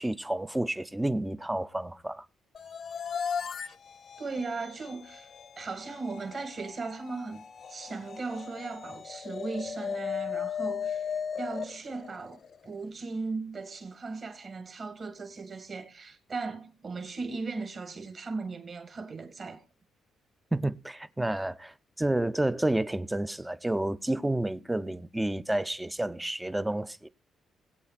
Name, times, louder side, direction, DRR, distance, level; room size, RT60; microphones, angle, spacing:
voice 1, 0.0-2.2 20.5-27.1, right 1 dB, 10° right, 0.6 m, -30 dB
sound 1, 2.5-12.7, left 7 dB, 50° left, 0.8 m, -37 dB
voice 2, 4.2-5.3 5.6-11.1 11.4-19.6, right 4 dB, 40° right, 2.3 m, -37 dB
22.0 x 8.5 x 2.5 m
cardioid pair, 90°, 0 cm